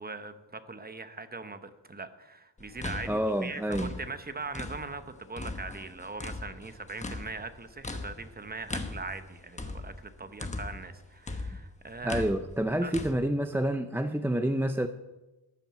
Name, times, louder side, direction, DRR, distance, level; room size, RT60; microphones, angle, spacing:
voice 1, 0.0-12.2 12.6-13.0, right 3 dB, 20° right, 10 dB, 0.9 m, -41 dB
sound 1, 2.6-5.0 5.4-10.9 11.3-13.1, left 2 dB, 15° left, 1.1 m, -39 dB
voice 2, 3.1-3.9 12.0-14.9, right 1 dB, 5° right, 8 dB, 0.4 m, -28 dB
13.0 x 8.9 x 7.4 m, 1.1 s
wide cardioid pair, 140°, 45 cm